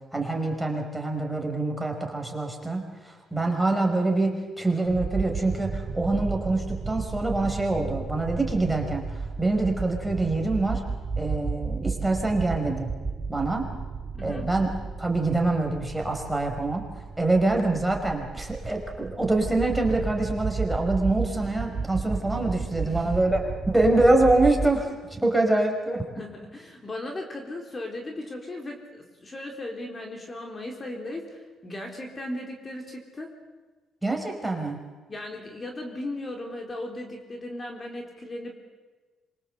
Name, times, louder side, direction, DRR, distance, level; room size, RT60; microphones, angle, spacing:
voice 1, 0.1-9.0 9.4-10.8 11.2-12.9 13.3-13.7 14.2-14.7 15.0-16.9 17.2-26.0 34.0-34.8, right 2 dB, 5° right, 2 dB, 5.5 m, -25 dB
sound 1, 4.9-24.7, right 4 dB, 40° right, 3.8 m, -33 dB
voice 2, 14.1-14.6 22.8-23.2 26.1-33.3 35.1-38.5, left 1 dB, 30° left, 2 dB, 4.1 m, -37 dB
26.5 x 24.5 x 8.1 m, 1.3 s
cardioid pair, 90°, 0 cm